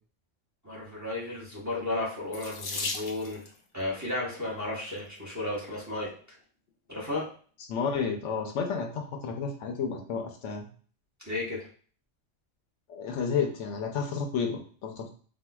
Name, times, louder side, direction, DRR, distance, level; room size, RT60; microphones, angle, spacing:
voice 1, 0.6-3.4 3.7-6.1 6.9-7.3 11.3-11.6, left 2 dB, 15° right, -5 dB, 1.0 m, -33 dB
Water tap faucet / Sink (filling or washing), 2.3-3.6 4.6-5.0 5.7-5.8 6.1-6.2, left 3 dB, 55° left, 0.6 m, -36 dB
voice 2, 7.7-10.7 12.9-15.2, left 6 dB, 75° left, 3 dB, 0.9 m, -31 dB
4.3 x 2.3 x 2.2 m, 0.43 s
omnidirectional pair, 1.3 m